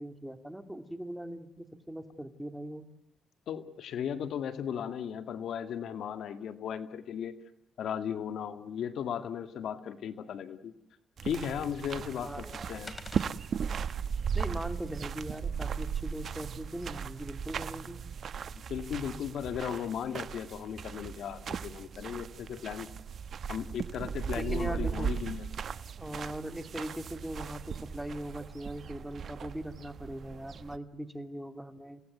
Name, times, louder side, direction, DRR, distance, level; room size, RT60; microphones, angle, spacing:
voice 1, 0.0-2.8 12.2-12.8 14.3-18.0 24.3-25.1 26.0-32.0, right 1 dB, 5° right, 7 dB, 2.9 m, -40 dB
voice 2, 3.5-7.3 7.8-10.7 11.2-12.9 18.7-22.9 23.5-25.5, left 8 dB, 70° left, 10 dB, 2.0 m, -36 dB
sound 1, 11.2-30.8, right 7 dB, 55° right, 1.0 m, -37 dB
sound 2, 11.7-17.2, left 2 dB, 20° left, 3.7 m, -55 dB
30.0 x 18.0 x 9.4 m, 0.82 s
cardioid pair, 90°, 0 cm